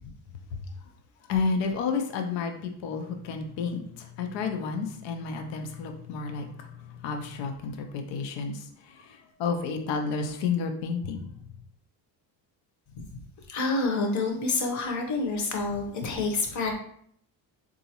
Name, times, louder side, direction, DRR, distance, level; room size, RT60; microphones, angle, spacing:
voice 1, 1.3-11.3, left 5 dB, 90° left, 5 dB, 0.6 m, -31 dB
voice 2, 13.5-16.7, left 3 dB, 40° left, 3 dB, 0.7 m, -28 dB
3.8 x 2.5 x 2.8 m, 0.64 s
cardioid pair, 140°, 43 cm